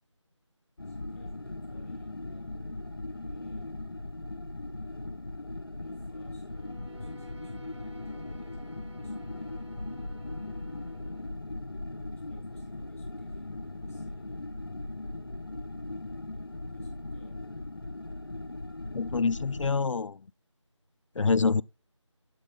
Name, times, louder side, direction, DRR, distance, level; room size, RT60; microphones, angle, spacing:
sound 1, 0.8-19.7, left 2 dB, 45° left, 0.8 m, -39 dB
voice 1, 0.8-2.6 3.0-3.9 5.8-6.5 6.8-9.8 10.7-11.6 12.1-14.5 16.3-17.5, left 2 dB, 25° left, 3.0 m, -62 dB
Bowed string instrument, 6.5-11.4, right 3 dB, 60° right, 0.9 m, -56 dB
voice 2, 18.9-20.2 21.2-21.6, left 4 dB, 75° left, 0.4 m, -26 dB
13.5 x 5.3 x 2.3 m
figure-of-eight pair, 175°, 16 cm